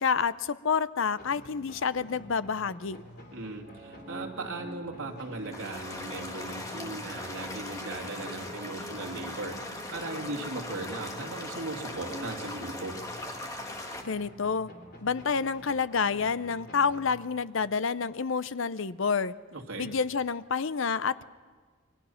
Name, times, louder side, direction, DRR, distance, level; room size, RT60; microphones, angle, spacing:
voice 1, 0.0-3.0 14.0-14.7 15.0-19.3 19.8-21.2, left 5 dB, 65° left, 15 dB, 0.6 m, -28 dB
sound 1, 1.2-17.7, equal, 45° left, 3.3 m, -50 dB
voice 2, 3.3-13.0 19.5-19.9, right 2 dB, 75° right, 1 dB, 3.0 m, -38 dB
sound 2, 3.6-13.0, right 1 dB, 30° right, 2.2 m, -46 dB
sound 3, 5.5-14.0, left 1 dB, 15° left, 1.7 m, -40 dB
28.5 x 22.5 x 5.8 m, 1.5 s
head